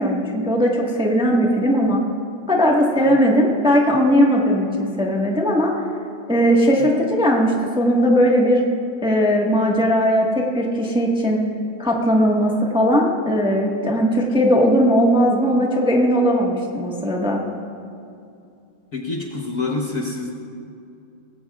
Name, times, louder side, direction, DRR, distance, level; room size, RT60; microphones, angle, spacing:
voice 1, 0.0-2.0 2.5-5.7 6.3-8.6 9.0-11.4 11.8-17.4, equal, 5° right, -2 dB, 1.1 m, -18 dB
voice 2, 18.9-20.3, left 3 dB, 45° left, -1 dB, 1.3 m, -26 dB
19.5 x 16.0 x 2.4 m, 2.5 s
omnidirectional pair, 2.3 m